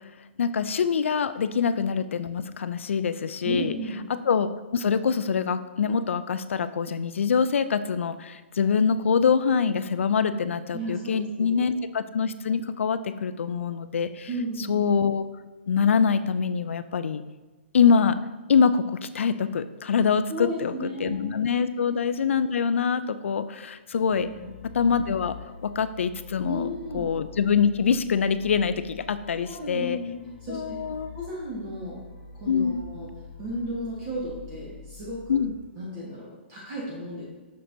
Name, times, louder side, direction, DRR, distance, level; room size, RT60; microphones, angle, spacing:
voice 1, 0.4-3.7 4.3-14.3 14.7-15.2 15.7-17.2 17.7-18.2 18.5-24.3 24.7-25.4 25.6-26.7 26.9-30.0 30.5-31.1 32.5-32.8 35.3-35.5, left 6 dB, 80° left, 12 dB, 0.4 m, -24 dB
voice 2, 3.4-4.0 10.7-11.7 14.3-14.9 20.3-21.3 24.3-24.5 26.4-27.1 29.5-30.1 30.4-30.8 31.1-32.0 32.4-33.1 33.4-35.4 35.7-37.2, equal, 30° right, -5 dB, 1.4 m, -34 dB
sound 1, 23.9-35.6, left 5 dB, 40° left, 1.3 m, -46 dB
6.3 x 5.9 x 2.7 m, 1.3 s
hypercardioid pair, 165°, 7 cm